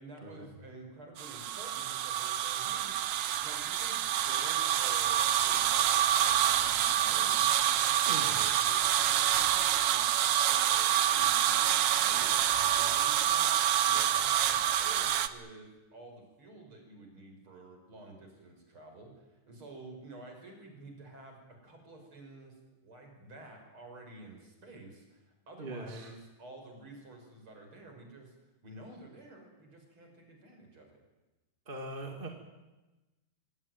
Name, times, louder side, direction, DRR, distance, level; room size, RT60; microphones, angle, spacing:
voice 1, 0.0-2.9 3.4-6.0 6.4-7.5 7.9-13.5 13.8-22.6 22.8-28.3 28.6-31.0, right 2 dB, 40° right, 3 dB, 6.3 m, -51 dB
sound 1, 1.2-15.3, right 11 dB, 70° right, 1.4 m, -27 dB
voice 2, 8.1-8.4 25.6-26.1 31.7-32.3, right 2 dB, 20° right, 3 dB, 2.0 m, -41 dB
25.5 x 17.5 x 9.3 m, 1.1 s
omnidirectional pair, 3.8 m